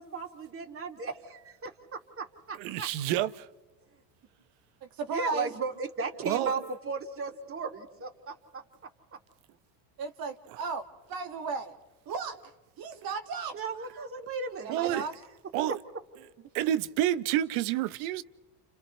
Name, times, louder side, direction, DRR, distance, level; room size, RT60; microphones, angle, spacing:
voice 1, 0.0-2.9 5.1-8.6 13.5-15.1 15.7-15.8, right 4 dB, 30° right, 2.8 m, -36 dB
voice 2, 2.6-3.3 6.2-6.5 14.7-15.0 15.5-15.8 16.5-18.2, right 12 dB, 75° right, 1.0 m, -28 dB
voice 3, 4.8-5.5 10.0-11.7 12.1-12.5 12.8-13.6 13.9-14.1 14.6-15.1, right 4 dB, 50° right, 2.1 m, -35 dB
30.0 x 29.5 x 3.3 m
supercardioid pair, 110°, 45 cm